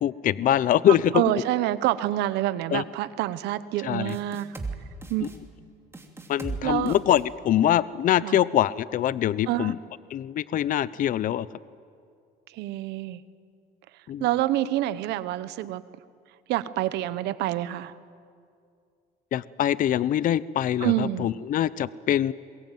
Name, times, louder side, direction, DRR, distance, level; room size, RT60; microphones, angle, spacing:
voice 1, 0.0-1.1 2.7-2.8 3.8-4.1 5.2-5.3 6.3-9.8 10.1-11.5 14.1-14.2 19.3-22.3, left 11 dB, 55° left, 18 dB, 0.6 m, -24 dB
voice 2, 0.9-4.5 5.1-5.3 6.6-6.9 8.2-8.4 9.5-9.7 12.5-13.2 14.2-15.8 16.5-17.9 20.8-21.3, right 14 dB, 85° right, 15 dB, 1.0 m, -27 dB
sound 1, 4.1-4.7 5.0-5.4 5.9-6.6 6.9-7.2, right 3 dB, 15° right, 2.9 m, -36 dB
27.5 x 22.0 x 9.2 m, 2.3 s
cardioid pair, 110°, 17 cm